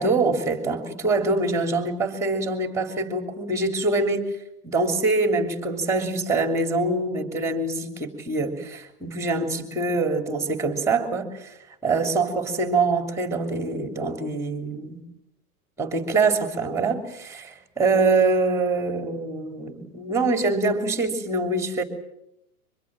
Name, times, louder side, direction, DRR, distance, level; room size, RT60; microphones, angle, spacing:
voice 1, 0.0-4.2 4.6-11.6 11.8-15.0 15.8-21.8, right 3 dB, 5° right, 7 dB, 3.2 m, -24 dB
24.5 x 21.5 x 7.6 m, 0.80 s
hypercardioid pair, 140°, 45 cm